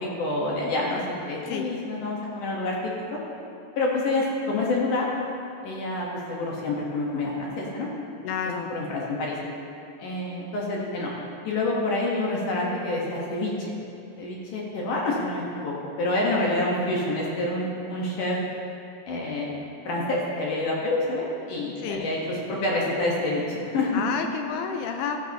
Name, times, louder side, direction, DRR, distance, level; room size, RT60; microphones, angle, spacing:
voice 1, 0.0-2.7 3.1-3.2 3.8-5.0 5.6-7.9 8.7-9.4 10.0-11.1 11.4-13.7 14.2-18.4 19.1-19.6 19.9-24.0, left 2 dB, 65° left, -3 dB, 2.2 m, -27 dB
voice 2, 8.2-8.7 21.8-22.1 23.9-25.2, left 6 dB, 85° left, 5 dB, 2.5 m, -30 dB
15.5 x 12.0 x 2.9 m, 2.6 s
omnidirectional pair, 4.9 m